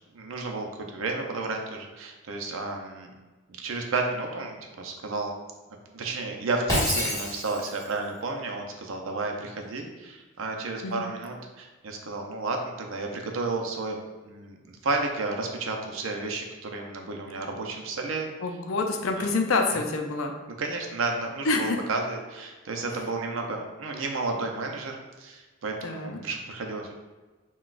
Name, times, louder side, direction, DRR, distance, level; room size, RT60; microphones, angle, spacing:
voice 1, 0.1-3.1 3.5-5.3 5.9-14.0 14.3-18.3 19.2-19.3 20.6-26.9, right 3 dB, 75° right, 2 dB, 0.5 m, -32 dB
Shatter, 6.7-7.9, left 1 dB, 20° left, 1.1 m, -28 dB
voice 2, 18.4-20.3 21.5-21.8 25.8-26.2, left 3 dB, 80° left, 4 dB, 0.5 m, -27 dB
5.8 x 2.3 x 2.4 m, 1.2 s
head